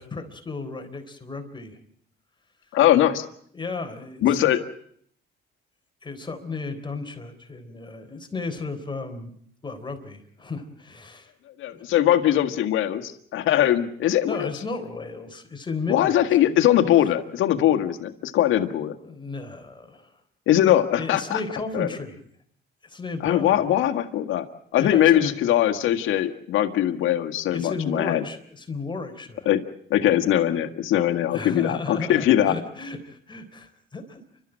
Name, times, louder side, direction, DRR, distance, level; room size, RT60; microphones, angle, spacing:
voice 1, 0.0-1.8 3.5-4.5 6.0-9.3 9.6-11.3 11.7-11.9 14.3-16.1 16.5-16.6 17.0-17.1 19.0-20.2 21.0-22.2 22.8-23.7 24.8-25.3 27.5-29.5 31.3-34.2, left 3 dB, 25° left, 6 dB, 3.7 m, -34 dB
voice 2, 2.7-3.2 4.2-4.6 11.6-14.5 15.9-18.9 20.5-21.4 21.7-21.9 23.2-24.4 24.7-28.2 29.4-29.6 29.9-32.5, left 12 dB, 85° left, 7 dB, 1.7 m, -21 dB
29.5 x 13.0 x 8.8 m, 0.65 s
cardioid pair, 90°, 20 cm